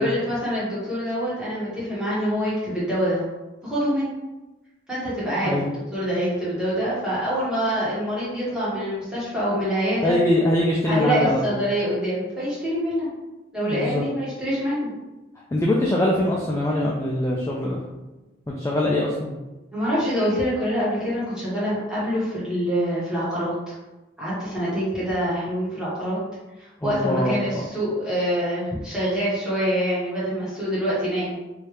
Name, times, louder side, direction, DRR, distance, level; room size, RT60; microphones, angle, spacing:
voice 1, 0.0-3.2 3.6-4.1 4.9-5.6 5.9-10.2 10.8-13.1 13.5-14.9 19.7-23.8 24.2-26.2 26.6-31.4, equal, 5° right, -10 dB, 1.4 m, -25 dB
voice 2, 10.0-11.4 13.6-14.0 15.5-17.8 18.5-19.3 26.8-27.6, left 1 dB, 15° left, -3 dB, 0.3 m, -23 dB
3.2 x 2.7 x 3.3 m, 1.1 s
head